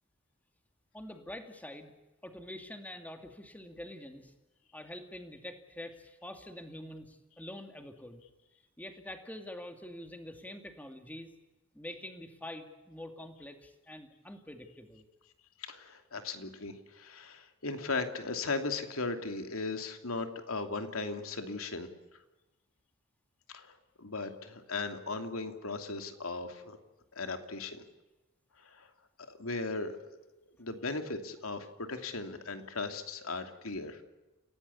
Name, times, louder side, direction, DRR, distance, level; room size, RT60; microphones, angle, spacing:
voice 1, 0.9-1.9 2.2-4.3 4.7-8.2 8.8-11.3 11.7-15.1 30.6-30.7, left 1 dB, 10° left, 6 dB, 2.5 m, -46 dB
voice 2, 15.6-21.9 23.5-26.8 27.1-27.8 28.6-28.9 29.3-30.0 30.6-34.0, left 3 dB, 85° left, 6 dB, 2.8 m, -37 dB
29.0 x 17.0 x 8.5 m, 1.1 s
head